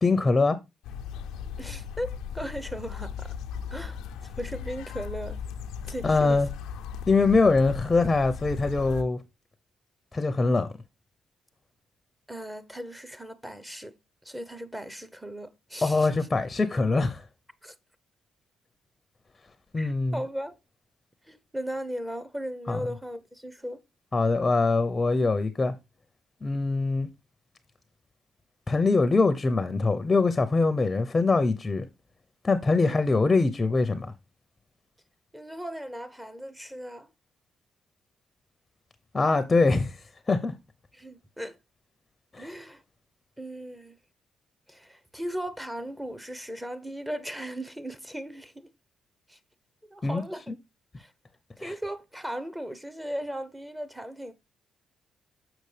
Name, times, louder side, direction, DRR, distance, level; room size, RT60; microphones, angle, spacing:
voice 1, 0.0-0.6 6.0-6.5 7.1-9.2 10.1-10.7 15.8-17.3 19.7-20.2 22.7-22.8 24.1-25.7 26.4-27.1 28.7-31.9 32.4-34.1 39.1-40.5 42.3-42.5 50.0-50.2 50.5-50.6 51.6-51.7, left 3 dB, 25° left, 0.6 m, -23 dB
sound 1, 0.8-9.0, left 7 dB, 90° left, 0.5 m, -37 dB
voice 2, 1.6-3.3 3.7-4.0 4.2-5.4 5.8-6.4 12.3-13.9 14.2-16.1 17.6-17.7 19.8-20.6 21.3-23.8 32.8-33.0 35.3-37.1 40.9-41.6 42.4-42.8 43.4-44.0 44.7-48.7 49.3-49.4 49.8-50.5 51.0-51.1 51.6-54.3, equal, 10° right, 0.8 m, -37 dB
6.6 x 6.2 x 3.3 m
cardioid pair, 90°, 0 cm